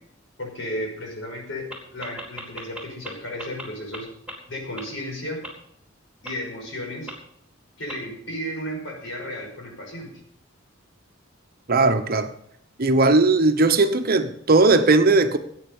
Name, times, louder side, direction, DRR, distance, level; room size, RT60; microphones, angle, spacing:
voice 1, 0.4-4.1 4.5-5.4 6.2-7.1 7.8-10.1, equal, 70° left, 5.7 m, -33 dB
sound 1, 1.7-1.8 2.0-3.1 3.4-3.6 3.9-4.0 4.3-4.4 4.8-4.9 5.4-5.5 6.3-6.4 7.1-7.2 7.9-8.0, right 1 dB, 5° right, 3.1 m, -35 dB
voice 2, 11.7-12.3 12.8-15.4, right 3 dB, 50° right, 1.0 m, -18 dB
17.0 x 8.8 x 5.4 m
head